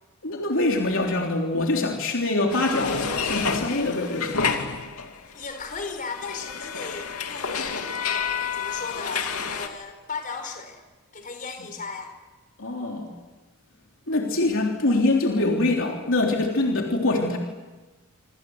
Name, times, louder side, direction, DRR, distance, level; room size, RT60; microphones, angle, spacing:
voice 1, 0.2-4.6 11.6-11.7 12.6-13.1 14.1-17.4, left 2 dB, 65° left, 1 dB, 3.5 m, -24 dB
sound 1, 2.5-5.3 5.6-9.7, left 5 dB, 80° left, 2.7 m, -29 dB
voice 2, 5.3-7.8 8.5-10.8 11.1-12.1, left 4 dB, 40° left, 6 dB, 4.7 m, -36 dB
27.5 x 26.0 x 8.0 m, 1.2 s
head